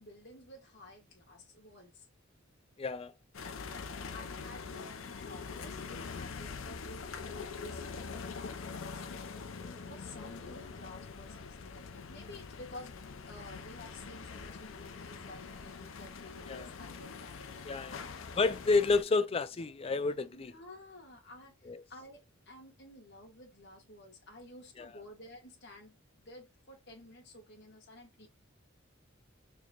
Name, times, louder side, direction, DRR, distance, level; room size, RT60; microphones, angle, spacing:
voice 1, 0.0-2.1 4.1-9.0 9.9-18.5 20.3-28.3, left 1 dB, 60° left, 1.9 m, -52 dB
voice 2, 2.8-3.1 9.5-9.8 16.5-16.7 17.6-18.0 18.4-20.5 21.7-21.8 24.8-24.9, left 3 dB, 30° left, 0.4 m, -30 dB
sound 1, 3.3-19.0, left 5 dB, 75° left, 0.6 m, -44 dB
4.5 x 3.0 x 2.4 m
head